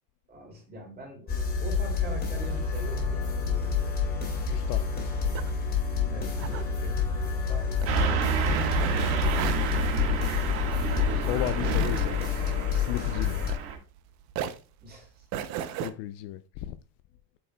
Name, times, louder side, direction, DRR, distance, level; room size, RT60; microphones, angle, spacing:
voice 1, 0.3-1.3 1.6-3.9 4.7-5.1 6.0-8.3 9.7-10.2 14.8-15.2, right 1 dB, 20° right, 2.7 m, -44 dB
sound 1, 1.3-13.5, left 6 dB, 20° left, 2.5 m, -28 dB
voice 2, 4.5-4.9 8.0-8.2 11.2-12.2 12.7-13.4 15.8-16.8, left 14 dB, 50° left, 0.5 m, -35 dB
sound 2, 5.3-14.0 14.3-15.9, right 9 dB, 35° right, 0.6 m, -36 dB
Car passing by / Truck, 7.9-13.8, right 8 dB, 60° right, 1.7 m, -30 dB
8.8 x 6.8 x 2.2 m
cardioid pair, 175°, 47 cm